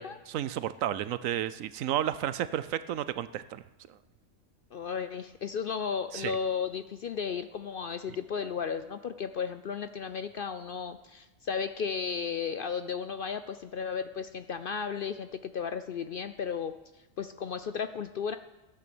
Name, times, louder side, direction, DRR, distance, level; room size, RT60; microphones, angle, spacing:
voice 1, 0.3-3.6 3.9-4.0 6.1-6.4, right 11 dB, 80° right, 15 dB, 1.0 m, -32 dB
voice 2, 4.7-16.7 17.2-18.4, left 6 dB, 60° left, 10 dB, 0.6 m, -34 dB
13.5 x 9.2 x 7.0 m, 1.0 s
omnidirectional pair, 1.4 m